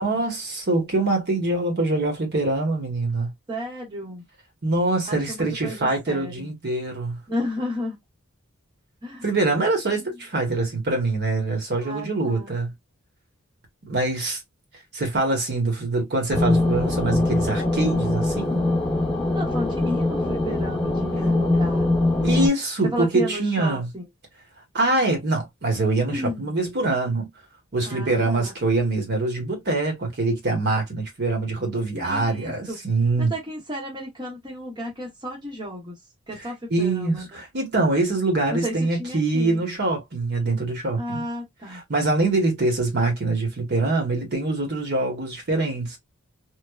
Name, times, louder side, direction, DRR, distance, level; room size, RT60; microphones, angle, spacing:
voice 1, 0.0-3.3 4.6-7.2 9.2-12.7 13.9-14.4 14.9-18.6 22.2-23.9 24.7-27.3 27.7-33.3 36.7-41.2 41.7-46.0, right 2 dB, 50° right, 1.0 m, -24 dB
voice 2, 3.5-4.2 5.1-6.5 7.3-8.0 9.0-9.3 9.9-10.0 11.8-12.5 19.3-21.8 22.8-24.0 26.1-26.6 27.9-28.5 31.9-32.8 33.2-36.0 36.3-37.3 38.5-39.6 41.0-41.8, equal, 20° right, 0.8 m, -33 dB
sound 1, 16.3-22.5, left 2 dB, 5° left, 1.0 m, -22 dB
3.1 x 2.1 x 2.2 m
head